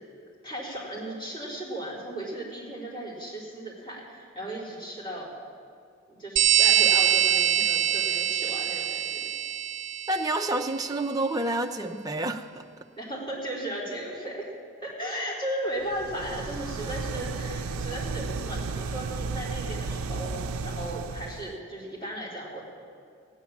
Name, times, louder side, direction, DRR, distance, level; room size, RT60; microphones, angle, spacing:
voice 1, 0.4-5.3 6.1-9.3 13.0-14.5 14.8-22.6, right 1 dB, 20° left, -6 dB, 3.8 m, -36 dB
sound 1, 6.4-10.6, right 10 dB, 55° right, 0.8 m, -24 dB
voice 2, 10.1-12.6, right 2 dB, 15° right, 4 dB, 0.6 m, -28 dB
sound 2, 15.8-21.6, right 4 dB, 75° right, 0.5 m, -33 dB
16.5 x 9.7 x 7.2 m, 2.4 s
head